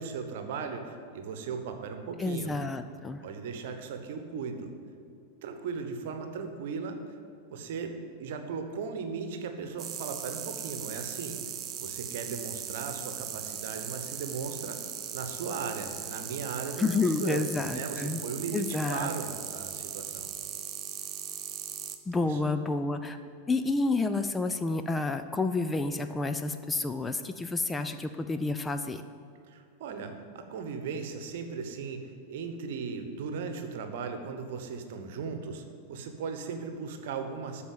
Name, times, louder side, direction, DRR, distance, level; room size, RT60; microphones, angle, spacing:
voice 1, 0.0-2.5 3.2-4.7 5.4-7.0 7.5-11.4 11.8-14.8 15.1-17.5 17.7-20.3 22.2-22.4 29.5-37.6, right 5 dB, 55° right, 6 dB, 1.0 m, -37 dB
voice 2, 2.2-3.2 16.8-18.2 18.5-19.1 22.1-23.2 23.5-29.0, left 3 dB, 10° left, 9 dB, 0.4 m, -29 dB
sound 1, 9.8-22.0, right 8 dB, 30° right, 0.7 m, -39 dB
12.5 x 4.3 x 7.4 m, 2.6 s
figure-of-eight pair, 90°, 0 cm